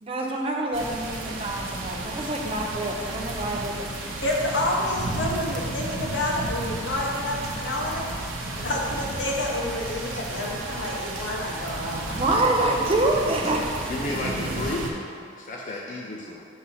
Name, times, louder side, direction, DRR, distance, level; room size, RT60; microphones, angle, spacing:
voice 1, 0.0-3.8 12.1-13.7, right 2 dB, 30° right, 0 dB, 0.5 m, -26 dB
sound 1, 0.7-14.9, right 2 dB, 90° right, 0.7 m, -33 dB
voice 2, 4.0-8.1 8.6-12.7, left 1 dB, 70° left, -2 dB, 0.9 m, -29 dB
voice 3, 13.9-15.0 15.3-16.5, left 2 dB, 40° left, -2 dB, 0.4 m, -32 dB
6.3 x 2.9 x 5.4 m, 2.3 s
head